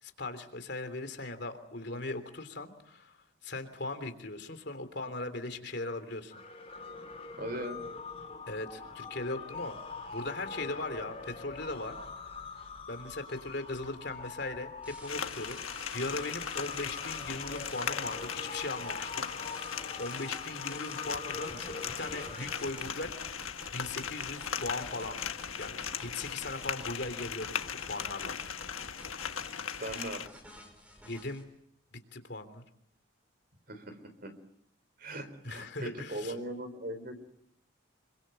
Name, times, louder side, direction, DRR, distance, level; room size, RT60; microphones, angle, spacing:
voice 1, 0.0-3.2 3.4-6.3 8.5-9.8 10.1-12.0 12.9-14.7 15.0-19.7 20.0-23.1 23.7-25.2 25.6-27.6 27.9-28.3 31.0-31.5 31.9-32.6 35.4-36.3, left 2 dB, 55° left, 8 dB, 3.3 m, -39 dB
sound 1, 6.3-22.8, left 4 dB, 30° left, 5.7 m, -44 dB
voice 2, 7.4-7.8 29.8-30.2 33.7-34.4 35.0-37.2, right 1 dB, 45° right, 10 dB, 4.2 m, -39 dB
sound 2, 14.8-31.4, equal, 5° right, 5.4 m, -51 dB
sound 3, 15.1-30.3, left 8 dB, 90° left, 1.5 m, -38 dB
27.5 x 24.0 x 7.8 m, 0.72 s
head